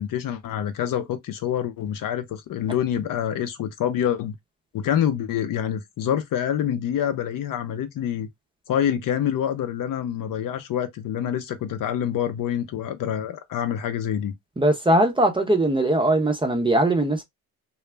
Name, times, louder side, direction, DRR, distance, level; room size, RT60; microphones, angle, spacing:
voice 1, 0.0-4.4 4.7-8.3 8.7-14.3, left 9 dB, 55° left, 0.6 m, -26 dB
voice 2, 14.6-17.2, right 1 dB, 10° right, 0.6 m, -20 dB
2.3 x 2.0 x 3.2 m
supercardioid pair, 80°, 41 cm